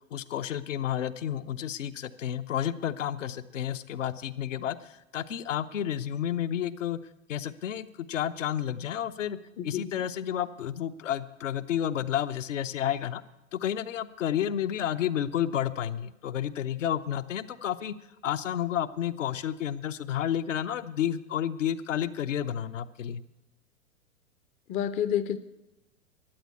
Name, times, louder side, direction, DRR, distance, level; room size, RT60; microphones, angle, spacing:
voice 1, 0.1-7.0 7.3-9.4 9.6-13.2 13.5-17.9 18.2-23.2, left 10 dB, 70° left, 9 dB, 0.8 m, -31 dB
voice 2, 9.6-9.9 24.7-25.4, left 9 dB, 20° left, 13 dB, 0.5 m, -29 dB
13.0 x 9.5 x 8.3 m, 0.95 s
hypercardioid pair, 105°, 39 cm